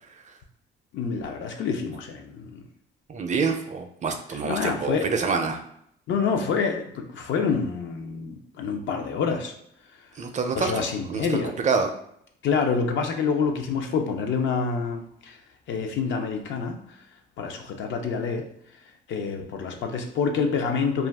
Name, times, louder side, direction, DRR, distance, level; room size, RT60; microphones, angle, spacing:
voice 1, 0.9-2.7 4.3-5.1 6.1-9.5 10.0-10.1 10.5-11.6 12.4-15.4 15.7-17.0 17.4-18.5 18.8-21.1, left 5 dB, 70° left, 4 dB, 0.5 m, -27 dB
voice 2, 3.1-5.6 10.2-11.3 11.6-11.9, right 5 dB, 35° right, 5 dB, 0.4 m, -26 dB
2.4 x 2.3 x 3.4 m, 0.71 s
cardioid pair, 90°, 20 cm